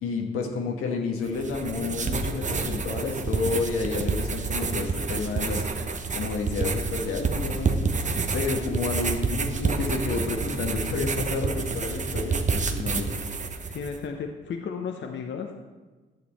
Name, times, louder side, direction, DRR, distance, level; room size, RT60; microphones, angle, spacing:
voice 1, 0.0-8.0 8.3-13.4, left 4 dB, 90° left, 2 dB, 1.4 m, -30 dB
sound 1, 1.3-14.0, right 4 dB, 35° right, 0.9 m, -29 dB
voice 2, 13.7-15.5, left 6 dB, 60° left, 4 dB, 0.8 m, -33 dB
10.5 x 7.0 x 4.2 m, 1.3 s
cardioid pair, 70°, 21 cm